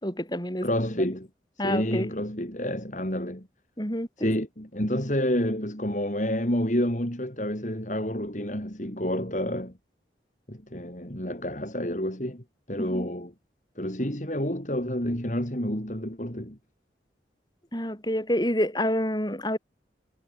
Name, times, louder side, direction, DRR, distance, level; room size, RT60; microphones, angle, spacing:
voice 1, 0.0-0.7 1.6-2.1 3.8-4.3 12.8-13.1 17.7-19.6, left 1 dB, 25° left, 7.4 m, -28 dB
voice 2, 0.6-1.3 1.6-3.5 4.2-9.7 10.5-13.3 13.8-16.6, left 1 dB, 45° left, 4.2 m, -29 dB
head